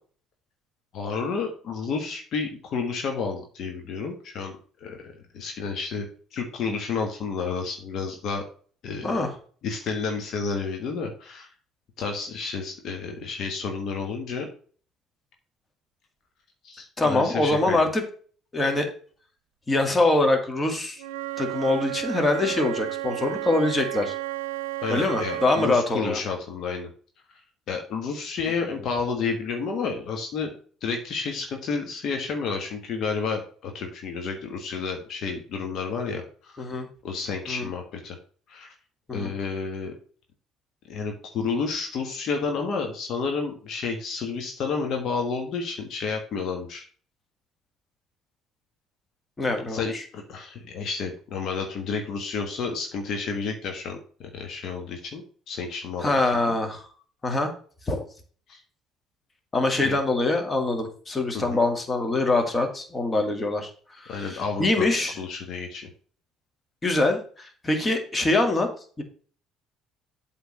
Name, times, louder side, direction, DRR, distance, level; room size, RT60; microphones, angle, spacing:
voice 1, 0.9-6.1 6.3-8.4 8.8-9.1 9.6-11.5 12.0-14.5 16.6-17.8 24.8-26.9 27.7-30.5 30.8-36.7 37.0-38.2 38.5-38.7 39.1-39.9 40.9-46.8 49.7-56.0 56.5-56.6 58.5-58.6 59.8-60.0 61.3-61.6 64.1-64.9 65.2-65.9, left 5 dB, 60° left, 3 dB, 1.5 m, -31 dB
voice 2, 17.0-18.0 18.5-18.9 19.7-21.0 21.4-24.2 24.9-26.2 28.6-28.8 36.6-36.9 37.5-37.7 39.1-39.3 49.4-50.0 56.0-56.9 57.2-57.5 57.9-58.0 59.5-65.2 66.8-68.7 69.0-69.1, left 2 dB, 25° left, 4 dB, 2.2 m, -24 dB
Wind instrument woodwind instrument, 21.0-25.8, right 16 dB, 85° right, 0.5 m, -32 dB
8.1 x 3.9 x 6.3 m, 0.43 s
hypercardioid pair, 65°, 0 cm